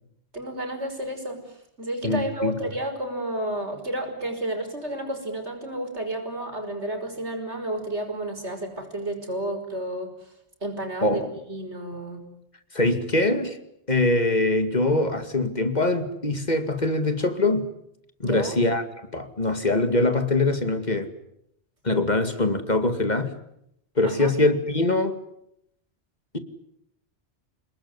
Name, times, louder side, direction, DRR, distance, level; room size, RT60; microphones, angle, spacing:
voice 1, 0.3-1.4 1.8-10.1 10.6-11.2 11.5-12.3 18.2-18.6 24.0-24.3, right 1 dB, 90° right, 5 dB, 6.0 m, -31 dB
voice 2, 2.0-2.6 11.0-11.3 12.7-13.6 13.9-17.7 18.2-18.8 19.1-21.1 21.8-23.3 24.0-25.2 26.3-26.4, left 2 dB, 40° left, 9 dB, 2.3 m, -23 dB
28.5 x 20.0 x 9.7 m, 0.77 s
omnidirectional pair, 1.1 m